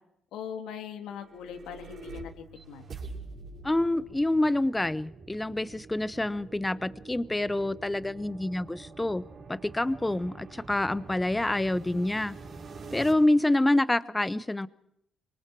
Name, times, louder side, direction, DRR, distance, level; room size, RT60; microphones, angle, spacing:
voice 1, 0.3-2.8, left 8 dB, 90° left, 5 dB, 2.8 m, -40 dB
sound 1, 1.1-13.1, right 4 dB, 50° right, 5.8 m, -46 dB
voice 2, 3.6-9.2 9.5-12.4 12.9-14.7, left 1 dB, 10° left, 17 dB, 0.8 m, -27 dB
25.0 x 24.5 x 4.7 m, 0.75 s
cardioid pair, 120°, 0 cm